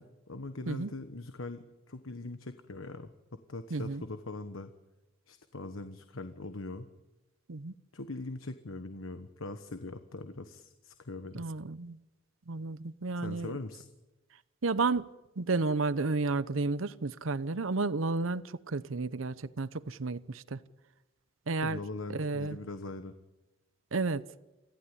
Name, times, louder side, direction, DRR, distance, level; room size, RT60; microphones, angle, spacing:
voice 1, 0.0-3.1 3.5-4.7 5.3-6.9 7.9-11.4 13.1-13.9 21.6-23.1, left 2 dB, 85° left, 1.2 m, -41 dB
voice 2, 3.7-4.0 7.5-7.7 11.3-12.0 12.5-13.5 14.6-15.1 15.4-20.6 21.5-21.8 22.1-22.6 23.9-24.2, right 3 dB, 80° right, 0.8 m, -32 dB
26.0 x 15.5 x 9.8 m
head